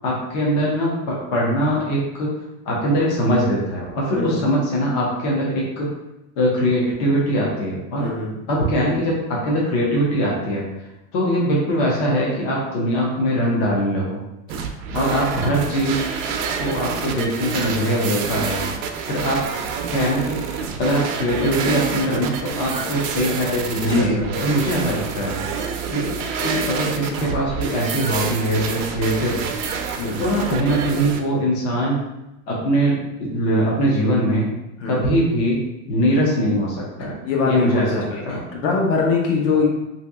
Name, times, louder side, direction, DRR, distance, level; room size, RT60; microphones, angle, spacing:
voice 1, 0.0-2.3 2.7-5.9 6.4-8.1 8.5-10.7 11.1-14.2 14.9-16.0 16.6-18.6 19.1-19.4 19.9-20.4 20.8-25.4 25.9-26.1 26.4-29.5 30.2-32.0 32.5-34.5 34.8-35.6 35.9-37.2 37.4-38.4, equal, 25° left, -4 dB, 0.3 m, -22 dB
voice 2, 8.0-8.3 23.8-24.2 30.0-30.2 34.8-35.0 37.2-39.7, left 4 dB, 65° left, 0 dB, 1.0 m, -22 dB
sound 1, 14.5-31.2, right 6 dB, 70° right, 0.6 m, -28 dB
2.9 x 2.7 x 3.4 m, 0.94 s
supercardioid pair, 175°, 40 cm